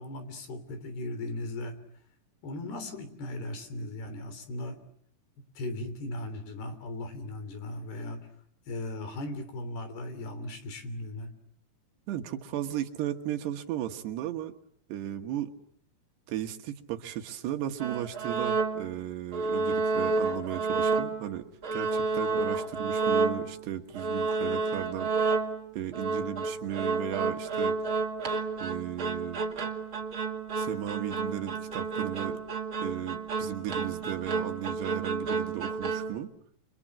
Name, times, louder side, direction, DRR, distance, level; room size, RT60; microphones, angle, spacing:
voice 1, 0.0-1.8 2.4-4.8 5.6-8.3 8.7-11.3, left 1 dB, 65° left, 10 dB, 5.2 m, -37 dB
voice 2, 12.1-14.5 14.9-15.5 16.3-25.1 25.7-28.0 28.6-29.4 30.6-32.4 32.8-36.3, right 11 dB, 70° right, 6 dB, 3.4 m, -35 dB
sound 1, 17.8-19.0 19.3-21.3 21.6-23.6 24.0-36.2, right 4 dB, 40° right, 2.1 m, -30 dB
29.5 x 27.5 x 7.3 m, 0.70 s
omnidirectional pair, 5.2 m